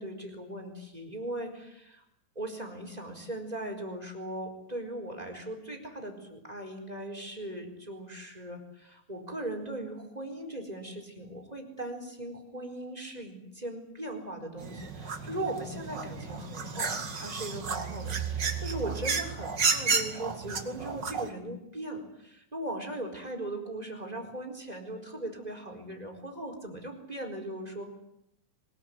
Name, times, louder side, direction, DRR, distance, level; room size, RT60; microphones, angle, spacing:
voice 1, 0.0-2.0 2.3-27.9, right 1 dB, 10° right, 5 dB, 3.7 m, -39 dB
sound 1, 14.6-21.3, right 5 dB, 80° right, 1.0 m, -32 dB
23.5 x 21.0 x 9.7 m, 0.79 s
omnidirectional pair, 5.7 m